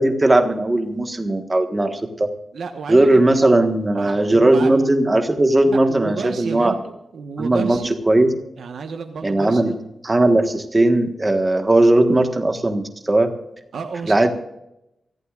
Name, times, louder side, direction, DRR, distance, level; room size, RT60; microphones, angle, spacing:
voice 1, 0.0-2.3 2.9-6.7 7.4-7.8 8.1-8.4 9.2-9.7 10.0-13.3 14.1-14.3, right 2 dB, 20° right, 5 dB, 1.5 m, -17 dB
voice 2, 2.5-3.2 3.9-4.7 5.6-7.9 8.6-9.7 10.3-10.4 13.7-14.3, right 5 dB, 80° right, 4 dB, 1.2 m, -31 dB
24.0 x 15.0 x 2.5 m, 0.87 s
wide cardioid pair, 170°, 0 cm